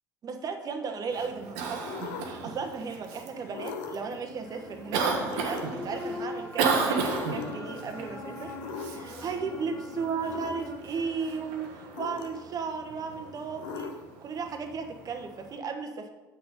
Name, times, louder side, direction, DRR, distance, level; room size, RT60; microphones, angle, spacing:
voice 1, 0.2-8.5 8.9-13.9 14.2-16.1, right 5 dB, 35° right, 6 dB, 1.1 m, -35 dB
Cough, 1.1-15.6, right 4 dB, 60° right, 1.1 m, -35 dB
sound 1, 1.8-2.5 3.5-4.2 5.2-5.9 7.0-7.7 8.6-9.2 10.2-10.7 11.9-12.6 13.6-14.2, left 6 dB, 60° left, 0.8 m, -39 dB
sound 2, 4.4-10.8, left 3 dB, 25° left, 1.4 m, -42 dB
8.1 x 6.1 x 5.2 m, 1.2 s
figure-of-eight pair, 60°, 10 cm